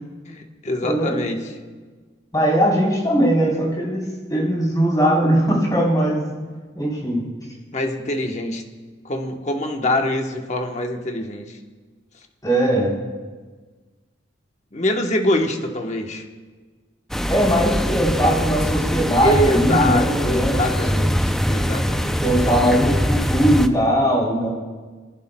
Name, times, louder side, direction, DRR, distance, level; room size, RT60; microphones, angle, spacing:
voice 1, 0.3-1.5 7.7-8.7 9.0-11.6 14.7-16.3 19.2-22.2, left 1 dB, 40° left, 3 dB, 1.1 m, -24 dB
voice 2, 0.8-1.2 2.3-6.2 6.7-7.2 12.4-12.9 17.3-20.6 22.2-24.5, equal, 20° left, -5 dB, 3.7 m, -20 dB
sound 1, 17.1-23.7, equal, ahead, 0.4 m, -22 dB
21.0 x 11.5 x 2.2 m, 1.4 s
head